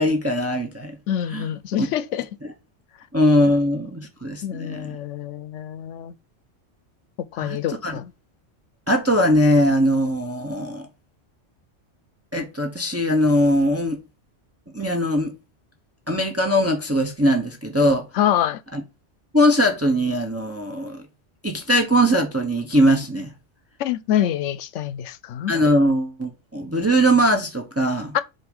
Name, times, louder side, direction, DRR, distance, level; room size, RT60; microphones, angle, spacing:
voice 1, 0.0-1.0 1.3-1.5 1.8-1.9 2.4-2.5 3.1-5.0 7.4-7.9 8.9-10.9 12.3-14.0 14.7-15.3 16.1-18.1 18.7-18.8 19.3-21.0 21.4-23.3 25.5-28.1, equal, 15° right, 0.8 m, -20 dB
voice 2, 1.1-2.3 4.4-6.1 7.2-8.1 18.2-18.6 23.8-25.5 28.1-28.2, left 11 dB, 85° left, 0.9 m, -25 dB
7.8 x 2.7 x 5.2 m
omnidirectional pair, 1.2 m